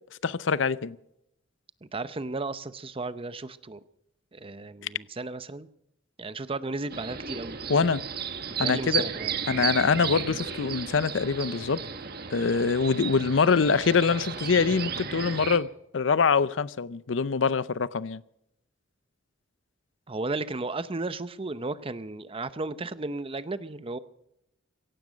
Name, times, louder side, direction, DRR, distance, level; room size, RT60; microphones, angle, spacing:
voice 1, 0.2-1.0 7.7-8.0 8.6-9.0 9.5-11.8 12.3-15.7 15.9-18.2, left 5 dB, 80° left, 0.6 m, -24 dB
voice 2, 1.8-3.8 4.3-5.7 6.2-7.6 8.6-9.3 20.1-24.0, right 3 dB, 30° right, 0.7 m, -34 dB
sound 1, 6.9-15.6, right 7 dB, 55° right, 1.4 m, -34 dB
17.0 x 15.5 x 5.1 m
head